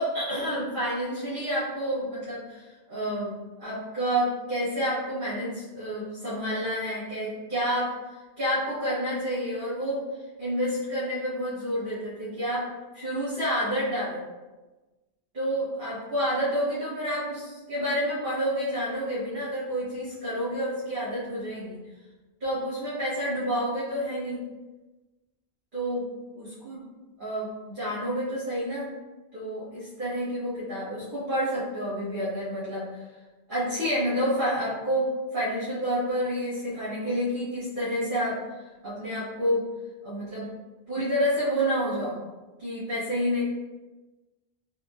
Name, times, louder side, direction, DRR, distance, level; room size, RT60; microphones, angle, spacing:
voice 1, 0.0-7.9 8.4-10.0 10.4-12.7 12.9-14.2 15.3-21.8 22.4-24.4 25.7-26.0 26.3-26.8 27.2-28.9 29.3-32.9 33.5-38.4 38.8-39.6 40.0-40.5 40.9-42.2 42.6-43.4, equal, 50° right, -12 dB, 1.7 m, -29 dB
3.6 x 3.3 x 2.4 m, 1.2 s
omnidirectional pair, 1.1 m